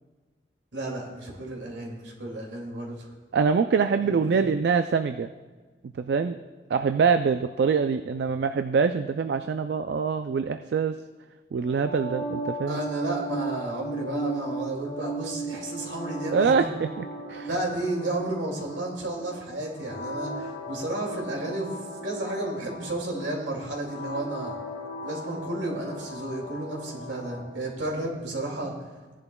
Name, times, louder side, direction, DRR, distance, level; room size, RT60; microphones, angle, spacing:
voice 1, 0.7-3.1 4.3-4.5 12.7-16.7 17.4-24.6 25.0-28.7, right 1 dB, 80° right, -1 dB, 2.4 m, -32 dB
voice 2, 3.3-5.3 5.8-6.4 6.7-11.0 11.5-12.8 16.3-17.5, right 5 dB, 60° right, 9 dB, 0.3 m, -24 dB
sound 1, 11.6-27.6, right 1 dB, 90° left, 2.4 m, -37 dB
16.0 x 10.5 x 2.3 m, 1.3 s
head